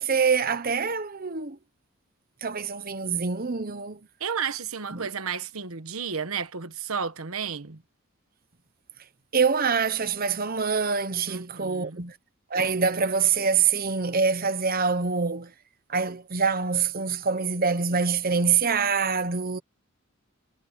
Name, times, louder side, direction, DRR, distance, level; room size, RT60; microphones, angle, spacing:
voice 1, 0.0-1.6 2.4-4.0 4.9-5.1 9.3-12.2 12.5-15.5 15.9-19.6, right 5 dB, 45° right, 1.0 m, -25 dB
voice 2, 4.2-7.8 11.3-12.0, right 6 dB, 85° right, 1.3 m, -32 dB
head